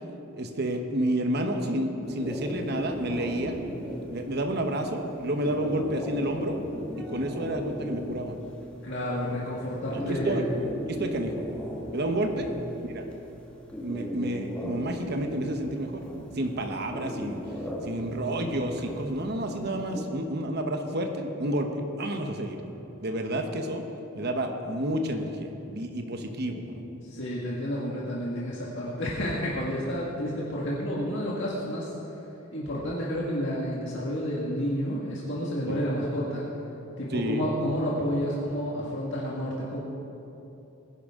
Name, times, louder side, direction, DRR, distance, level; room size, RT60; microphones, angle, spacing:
voice 1, 0.3-3.6 4.1-6.6 7.0-8.3 9.9-10.4 10.9-11.5 11.9-12.5 12.8-13.0 13.8-16.0 16.3-17.4 17.8-22.6 23.0-23.8 24.1-26.9 35.7-35.8 37.1-37.5, right 1 dB, 50° right, 4 dB, 1.0 m, -30 dB
sound 1, 2.0-20.0, equal, 5° left, 1.7 m, -37 dB
voice 2, 8.8-10.4 12.5-12.6 27.1-31.9 32.5-36.4 37.0-39.8, equal, 60° left, -6 dB, 1.8 m, -30 dB
20.5 x 10.5 x 3.7 m, 2.9 s
head